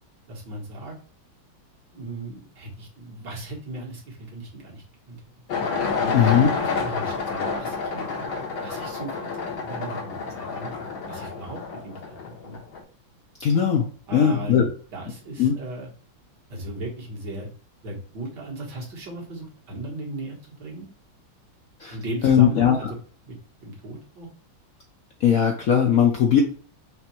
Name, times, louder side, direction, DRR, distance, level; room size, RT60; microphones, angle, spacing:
voice 1, 0.3-0.9 1.9-5.2 6.0-8.3 8.6-10.8 11.1-12.2 12.4-12.6 14.1-14.7 14.9-15.9 16.5-17.5 17.8-20.9 21.9-23.0 23.2-23.4 23.6-24.3, right 2 dB, 60° right, -1 dB, 1.9 m, -36 dB
sound 1, 5.5-12.8, left 4 dB, 85° left, 1.8 m, -29 dB
voice 2, 6.1-6.5 13.4-14.7 15.4-15.6 21.8-21.9 22.2-22.8 25.2-26.4, left 8 dB, 70° left, 2 dB, 0.8 m, -19 dB
5.0 x 3.2 x 3.0 m, 0.43 s
omnidirectional pair, 2.1 m